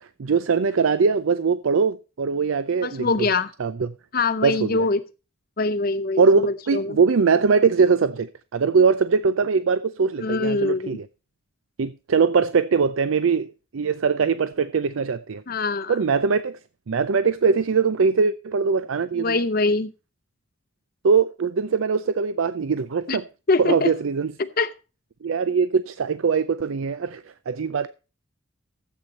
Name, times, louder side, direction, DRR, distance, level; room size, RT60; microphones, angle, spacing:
voice 1, 0.0-3.3 3.6-3.9 4.4-4.9 6.2-11.1 11.8-15.4 15.9-16.6 16.9-19.4 21.0-23.2 23.6-24.3 25.2-27.9, right 5 dB, 85° right, 0.5 m, -21 dB
voice 2, 2.8-3.5 4.1-5.0 5.6-7.0 10.2-11.0 15.5-16.0 19.2-19.9 23.1-23.2 23.5-23.9 24.6-24.7, left 3 dB, 45° left, 0.6 m, -23 dB
13.5 x 8.1 x 4.1 m
head